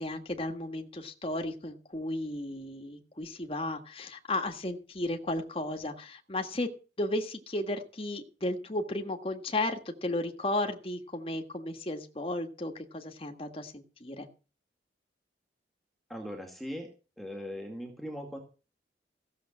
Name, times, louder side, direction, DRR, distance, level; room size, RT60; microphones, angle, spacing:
voice 1, 0.0-6.7 7.0-14.3, left 1 dB, 30° left, 4 dB, 1.7 m, -34 dB
voice 2, 16.1-16.9 17.2-18.4, equal, ahead, 2 dB, 2.3 m, -39 dB
15.5 x 7.4 x 7.4 m, 0.35 s
head